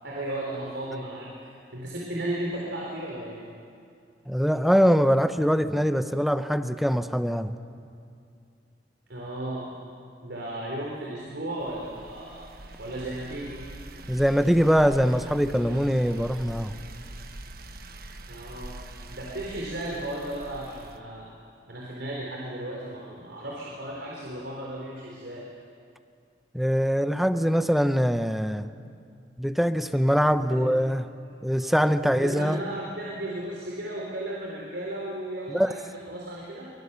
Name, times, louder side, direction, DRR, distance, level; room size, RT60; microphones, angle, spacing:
voice 1, 0.0-3.4 9.1-9.8 10.2-12.5 12.8-13.6 18.3-18.8 19.1-21.3 21.7-25.5 30.3-30.8 31.3-31.7 32.0-36.7, right 1 dB, 75° right, -3 dB, 4.0 m, -35 dB
voice 2, 4.3-7.5 14.1-16.7 26.5-28.7 29.4-31.0 31.4-32.6 35.5-35.7, equal, ahead, 10 dB, 0.7 m, -23 dB
sound 1, 11.6-21.0, right 2 dB, 55° right, 1.2 m, -43 dB
24.5 x 23.5 x 6.9 m, 2.5 s
head